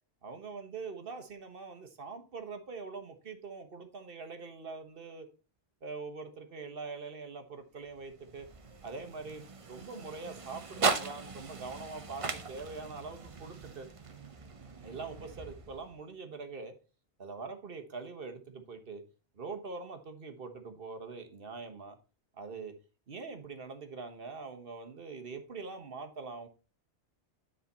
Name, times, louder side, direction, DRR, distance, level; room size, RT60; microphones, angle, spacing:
voice 1, 0.2-5.3 5.8-8.5 8.8-13.9 14.8-16.7 17.2-19.0 19.3-22.0 22.4-22.7 23.1-26.5, right 4 dB, 55° right, 6 dB, 1.4 m, -43 dB
sound 1, 7.8-16.1, right 4 dB, 35° right, 0.7 m, -39 dB
9.7 x 5.0 x 4.2 m, 0.34 s
omnidirectional pair, 1.2 m